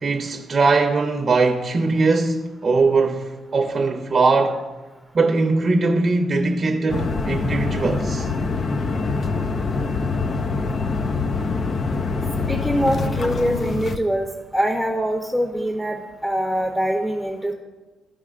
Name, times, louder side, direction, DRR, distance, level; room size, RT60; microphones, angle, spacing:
voice 1, 0.0-4.6 5.1-8.3, right 3 dB, 35° right, 0.7 m, -20 dB
sound-train whistle, 6.9-14.0, left 4 dB, 45° left, 0.5 m, -24 dB
voice 2, 12.5-17.5, equal, ahead, 0.8 m, -23 dB
14.0 x 4.9 x 2.5 m
cardioid pair, 90°, 0 cm